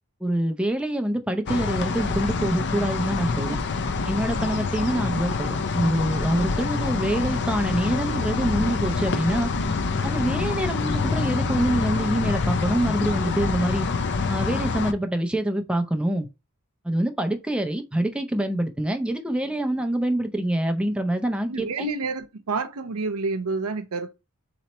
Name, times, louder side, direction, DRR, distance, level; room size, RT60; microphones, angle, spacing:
voice 1, 0.2-3.6 4.0-9.5 10.0-13.9 14.3-16.3 16.8-21.9, right 1 dB, 5° right, 0.5 m, -25 dB
sound 1, 1.5-14.9, left 4 dB, 50° left, 0.5 m, -26 dB
voice 2, 21.5-24.1, right 4 dB, 85° right, 0.7 m, -29 dB
4.0 x 3.0 x 4.3 m
head